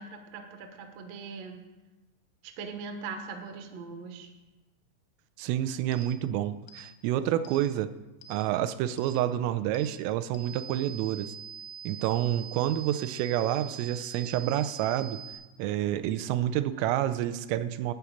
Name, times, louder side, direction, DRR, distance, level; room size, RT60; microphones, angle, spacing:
voice 1, 0.0-1.6 2.4-4.3, right 5 dB, 70° right, 5 dB, 2.1 m, -41 dB
voice 2, 5.4-7.9 8.3-11.3 11.9-15.2 15.6-17.9, right 12 dB, 90° right, 12 dB, 3.2 m, -29 dB
sound 1, 5.9-6.1 6.7-6.9 7.5-7.6 8.2-8.4 9.0-9.1 9.8-9.9 10.4-15.4, right 7 dB, 90° left, 3.4 m, -44 dB
11.5 x 5.9 x 8.5 m, 1.1 s
omnidirectional pair, 5.7 m